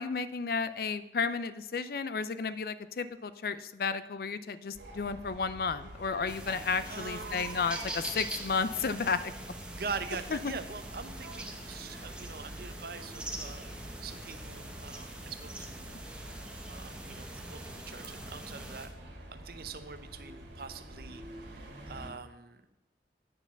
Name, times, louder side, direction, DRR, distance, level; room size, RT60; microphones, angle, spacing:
voice 1, 0.0-9.3 10.4-10.5, left 5 dB, 55° left, 14 dB, 0.4 m, -33 dB
sound 1, 4.7-22.1, right 1 dB, 85° right, 2.0 m, -47 dB
sound 2, 6.3-18.9, right 1 dB, 5° right, 0.9 m, -43 dB
voice 2, 6.9-7.5 9.7-13.7 14.0-16.0 16.3-18.9 19.3-22.6, right 5 dB, 55° right, 10 dB, 0.7 m, -43 dB
9.0 x 4.8 x 7.0 m, 0.99 s
head